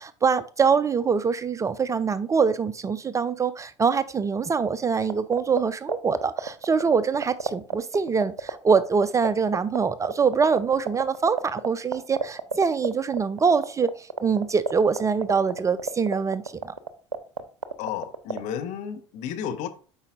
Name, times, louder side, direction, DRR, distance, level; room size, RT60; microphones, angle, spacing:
voice 1, 0.0-16.7, right 5 dB, 20° right, 0.4 m, -24 dB
sound 1, 5.0-18.4, right 5 dB, 85° right, 0.5 m, -27 dB
voice 2, 17.8-19.7, left 9 dB, 55° left, 0.9 m, -32 dB
8.1 x 5.4 x 2.5 m
figure-of-eight pair, 65°, 15 cm